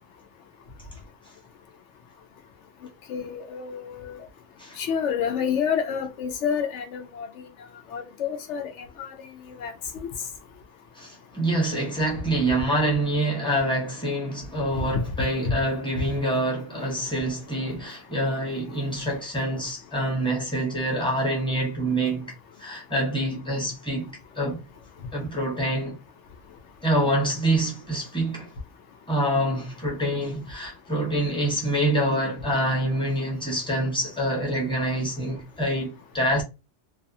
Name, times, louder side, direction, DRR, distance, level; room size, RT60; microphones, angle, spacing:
voice 1, 3.1-4.1 4.8-7.3 7.9-8.7 9.6-9.7 14.9-15.0, left 7 dB, 75° left, 0.9 m, -28 dB
voice 2, 11.0-24.1 24.4-24.6 25.1-26.0 26.8-28.5 29.1-36.4, right 1 dB, 5° left, 0.7 m, -26 dB
2.4 x 2.4 x 2.6 m
omnidirectional pair, 1.2 m